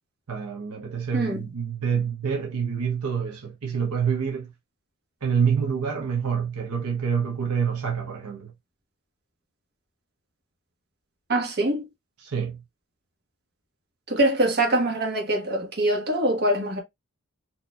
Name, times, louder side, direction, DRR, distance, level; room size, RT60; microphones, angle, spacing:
voice 1, 0.3-4.5 5.2-8.5 12.2-12.6, right 7 dB, 75° right, 0.8 m, -27 dB
voice 2, 1.1-1.5 11.3-11.9 14.1-16.8, right 1 dB, 45° right, 1.3 m, -24 dB
4.2 x 2.9 x 2.2 m
head